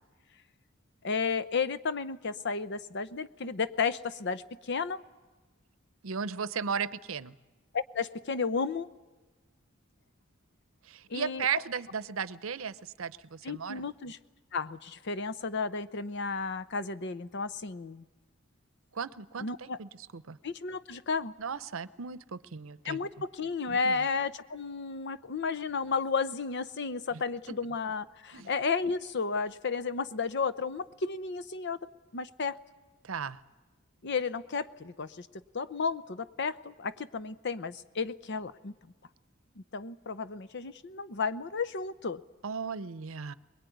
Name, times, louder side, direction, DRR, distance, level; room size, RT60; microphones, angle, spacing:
voice 1, 1.0-5.0 7.7-8.9 11.1-11.4 13.4-14.2 14.5-18.0 19.4-19.8 20.4-21.3 22.8-31.8 32.1-32.6 34.0-35.3 35.5-38.7 39.6-42.2, left 5 dB, 60° left, 14 dB, 0.8 m, -33 dB
voice 2, 6.0-7.4 10.8-13.8 18.9-20.4 21.4-23.1 23.7-24.0 27.1-27.2 27.5-27.6 28.3-28.5 33.0-33.4 42.4-43.3, right 6 dB, 85° right, 17 dB, 0.7 m, -36 dB
22.0 x 21.5 x 9.3 m, 1.3 s
head